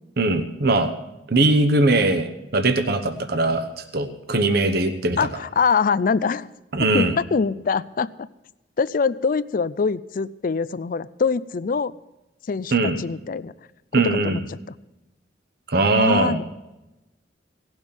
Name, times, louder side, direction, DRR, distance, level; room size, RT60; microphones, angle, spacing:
voice 1, 0.2-0.9 1.3-5.2 6.7-7.1 12.7-13.0 13.9-14.4 15.7-16.4, right 2 dB, 60° right, 7 dB, 1.0 m, -20 dB
voice 2, 5.2-6.5 6.9-8.1 8.8-11.9 12.5-12.7 13.0-13.5 14.0-14.4 15.9-16.4, left 5 dB, 50° left, 18 dB, 0.4 m, -23 dB
17.5 x 6.2 x 8.7 m, 0.97 s
head